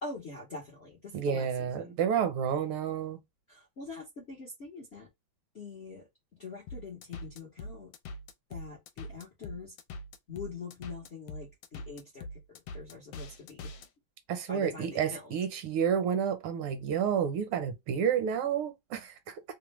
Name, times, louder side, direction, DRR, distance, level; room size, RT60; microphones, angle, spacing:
voice 1, 0.0-2.0 3.5-5.1 5.5-7.9 8.5-9.7 10.3-13.7 14.5-15.3, left 4 dB, 55° left, 0.7 m, -44 dB
voice 2, 1.1-3.2 14.3-19.4, right 8 dB, 80° right, 1.6 m, -30 dB
sound 1, 6.7-13.9, left 1 dB, 80° left, 1.4 m, -43 dB
3.6 x 2.2 x 2.9 m
omnidirectional pair, 2.4 m